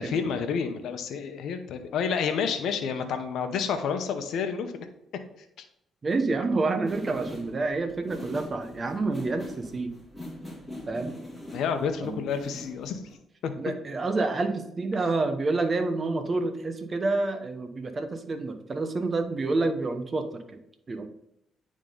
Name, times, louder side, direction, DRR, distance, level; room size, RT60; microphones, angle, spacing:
voice 1, 0.0-4.9 5.6-5.7 11.5-13.0 13.4-13.7, left 6 dB, 75° left, 7 dB, 0.8 m, -29 dB
voice 2, 6.0-9.9 10.9-11.1 12.0-12.2 13.6-20.6 20.9-21.1, right 3 dB, 35° right, 7 dB, 0.9 m, -28 dB
sound 1, 6.9-13.1, left 1 dB, 5° left, 2.2 m, -42 dB
9.5 x 3.7 x 3.8 m, 0.78 s
cardioid pair, 90°, 0 cm